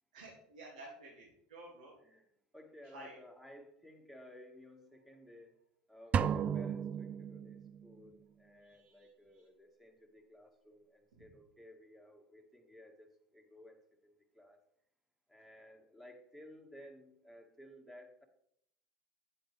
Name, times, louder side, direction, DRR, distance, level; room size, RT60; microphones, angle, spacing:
voice 1, 0.1-2.0 2.9-3.2 8.6-9.4 11.1-11.3, right 1 dB, 90° right, -3 dB, 2.3 m, -53 dB
voice 2, 2.0-5.6 5.9-14.6 15.3-18.2, equal, 5° right, 3 dB, 1.8 m, -57 dB
sound 1, 6.1-7.9, right 8 dB, 35° right, 0.4 m, -34 dB
9.6 x 7.7 x 3.4 m, 0.72 s
hypercardioid pair, 90°, 4 cm